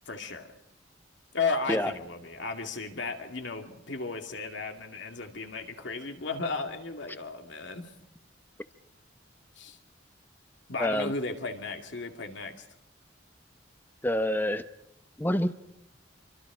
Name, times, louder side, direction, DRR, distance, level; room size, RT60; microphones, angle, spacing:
voice 1, 0.1-0.5 1.3-7.9 9.6-9.8 10.7-12.6, left 4 dB, 70° left, 5 dB, 2.4 m, -34 dB
voice 2, 10.8-11.1 14.0-14.6 15.2-15.5, left 1 dB, 10° left, 11 dB, 0.7 m, -27 dB
27.0 x 24.5 x 5.0 m, 0.79 s
head